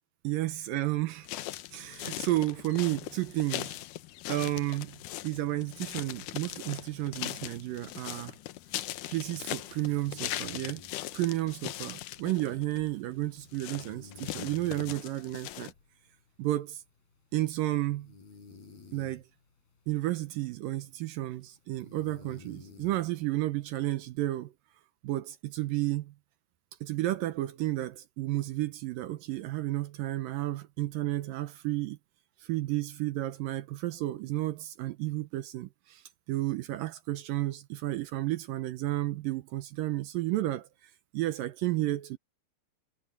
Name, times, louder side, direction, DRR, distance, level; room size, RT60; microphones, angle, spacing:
voice 1, 0.2-1.4 1.7-3.8 4.3-5.0 5.2-8.4 9.1-10.8 11.1-15.7 16.4-16.8 17.3-18.1 18.9-19.2 19.9-24.5 25.0-26.1 26.8-32.0 32.4-42.2, right 16 dB, 75° right, 2.1 m, -32 dB
sound 1, 1.2-15.7, left 15 dB, 85° left, 1.8 m, -40 dB
sound 2, 10.1-24.0, left 4 dB, 65° left, 6.7 m, -55 dB
omnidirectional pair, 4.8 m